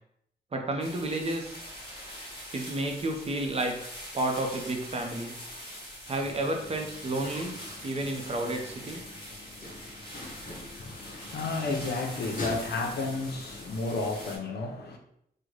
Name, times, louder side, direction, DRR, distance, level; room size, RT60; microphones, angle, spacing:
voice 1, 0.5-1.6 2.5-3.7 4.1-5.3 6.1-7.5 7.8-9.0, right 2 dB, 40° right, 0.5 m, -31 dB
sound 1, 0.8-14.4, equal, 30° left, 1.1 m, -44 dB
sound 2, 6.2-14.1, left 2 dB, 55° left, 0.8 m, -44 dB
voice 2, 10.8-15.0, left 3 dB, 85° left, 0.5 m, -32 dB
3.7 x 2.1 x 3.1 m
wide cardioid pair, 130°, 16 cm